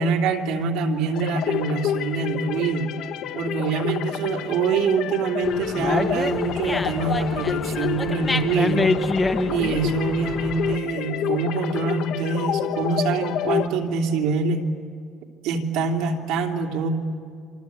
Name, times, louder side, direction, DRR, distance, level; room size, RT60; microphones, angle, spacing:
voice 1, 0.0-2.9 3.3-8.9 9.5-14.6 15.4-16.9, right 4 dB, 80° right, 2 dB, 3.1 m, -25 dB
sound 1, 1.1-13.7, left 10 dB, 70° left, 1.2 m, -29 dB
Dog, 5.4-10.8, left 3 dB, 15° left, 1.0 m, -27 dB
28.0 x 25.5 x 8.3 m, 2.4 s
cardioid pair, 140°, 0 cm